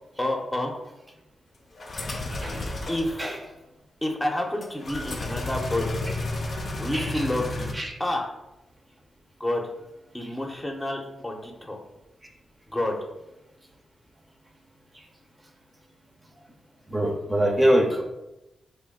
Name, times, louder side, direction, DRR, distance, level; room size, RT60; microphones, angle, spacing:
voice 1, 0.2-0.7 2.9-3.4 4.0-5.9 6.8-7.7 8.0-8.3 9.4-9.6 10.1-11.8 12.7-13.0, left 1 dB, 20° left, 1 dB, 0.7 m, -29 dB
sound 1, 1.8-3.1 4.6-7.7, left 2 dB, 55° left, 0.6 m, -32 dB
voice 2, 2.3-2.7 3.2-3.4 6.9-7.3 7.7-7.9 10.2-10.3 16.9-18.0, equal, 25° right, 2 dB, 0.6 m, -24 dB
3.1 x 2.2 x 3.5 m, 0.94 s
supercardioid pair, 40°, 0 cm